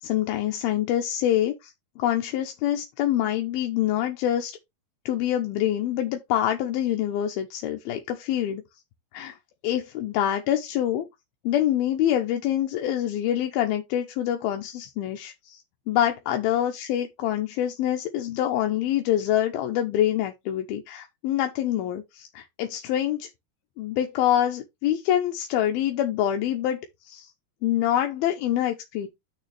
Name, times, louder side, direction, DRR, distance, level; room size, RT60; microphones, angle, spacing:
voice 1, 0.0-4.6 5.1-8.6 9.1-9.4 9.6-11.1 11.4-15.6 15.9-23.3 23.8-26.8 27.1-27.3 27.6-29.1, left 11 dB, 80° left, 2.7 m, -25 dB
9.1 x 6.6 x 3.3 m
omnidirectional pair, 4.3 m